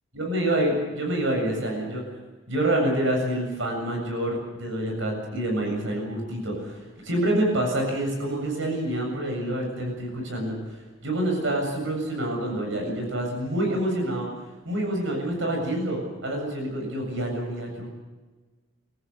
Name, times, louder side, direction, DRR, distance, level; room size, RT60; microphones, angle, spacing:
voice 1, 0.2-2.0 2.5-6.8 7.0-14.3 14.7-17.9, right 1 dB, 70° right, 2 dB, 7.5 m, -27 dB
28.0 x 15.5 x 8.2 m, 1.3 s
head